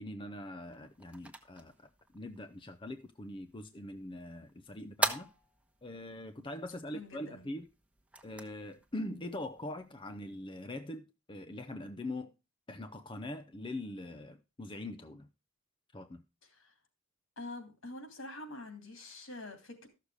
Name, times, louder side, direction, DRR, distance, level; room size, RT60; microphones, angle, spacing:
voice 1, 0.0-1.9 2.1-5.3 5.8-7.7 8.2-12.3 12.7-15.3 15.9-16.2, left 1 dB, 25° left, 0.6 m, -42 dB
sound 1, 0.6-10.4, right 2 dB, 5° right, 1.1 m, -43 dB
voice 2, 6.9-7.5 16.4-16.7 17.4-19.9, left 2 dB, 70° left, 3.1 m, -46 dB
13.5 x 6.6 x 4.8 m
head